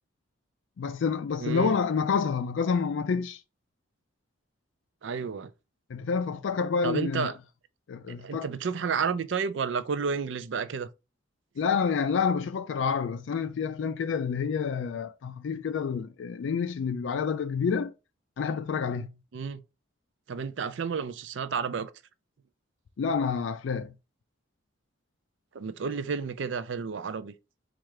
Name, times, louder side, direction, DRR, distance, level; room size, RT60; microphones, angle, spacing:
voice 1, 0.8-3.4 5.9-7.3 7.9-8.5 11.6-17.9 18.4-19.1 23.0-23.9, left 6 dB, 70° left, 0.4 m, -28 dB
voice 2, 1.4-1.8 5.0-5.5 6.8-7.4 8.1-10.9 19.3-19.6 20.3-21.9 25.5-27.3, right 5 dB, 65° right, 0.4 m, -31 dB
4.3 x 2.5 x 4.7 m
head